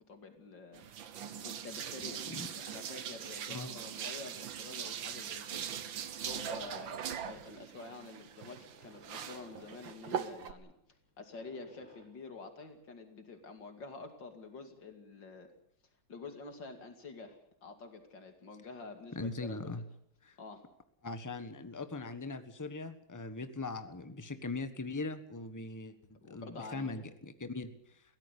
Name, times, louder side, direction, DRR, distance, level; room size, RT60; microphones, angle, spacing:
voice 1, 0.1-0.8 1.4-5.7 6.2-10.7 11.2-15.5 16.1-19.6 20.4-20.7 26.2-27.0, left 3 dB, 70° left, 6 dB, 3.0 m, -48 dB
sound 1, 0.7-10.5, right 8 dB, 85° right, 2.0 m, -41 dB
sound 2, 6.5-12.1, equal, 35° left, 5.4 m, -61 dB
voice 2, 19.1-19.8 20.2-20.4 21.0-28.0, left 3 dB, 10° left, 10 dB, 1.2 m, -40 dB
22.5 x 17.0 x 8.3 m, 0.71 s
omnidirectional pair, 2.0 m